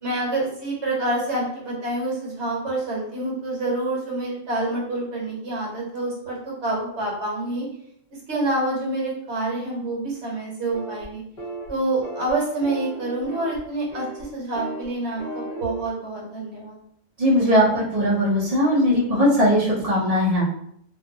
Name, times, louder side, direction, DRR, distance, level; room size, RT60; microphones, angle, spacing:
voice 1, 0.0-7.7 8.3-11.2 11.7-16.8, right 2 dB, 60° right, -4 dB, 1.3 m, -27 dB
sound 1, 10.7-11.0 11.4-11.7 12.0-12.3 12.6-13.6 13.9-14.2 14.5-14.9 15.2-15.8, right 2 dB, 35° left, 0.7 m, -35 dB
voice 2, 17.2-20.4, equal, 35° right, -6 dB, 0.8 m, -19 dB
2.5 x 2.4 x 2.6 m, 0.69 s
omnidirectional pair, 1.3 m